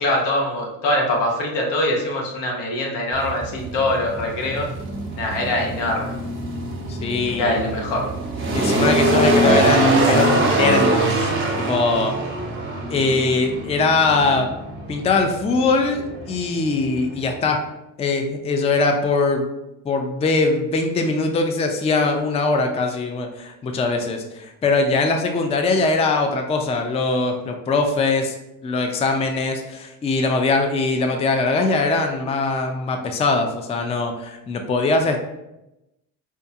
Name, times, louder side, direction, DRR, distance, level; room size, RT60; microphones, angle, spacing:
voice 1, 0.0-4.7 5.2-6.1 7.3-8.1, left 1 dB, 85° left, 0 dB, 1.0 m, -23 dB
sound 1, 3.1-17.6, right 1 dB, 30° right, 0.8 m, -23 dB
voice 2, 6.9-7.8 8.5-11.3 11.6-12.2 12.9-14.5 14.9-17.6 18.0-19.5 19.8-28.4 28.6-35.2, left 3 dB, 15° left, 5 dB, 0.3 m, -21 dB
4.6 x 2.2 x 2.7 m, 0.93 s
cardioid pair, 85°, 41 cm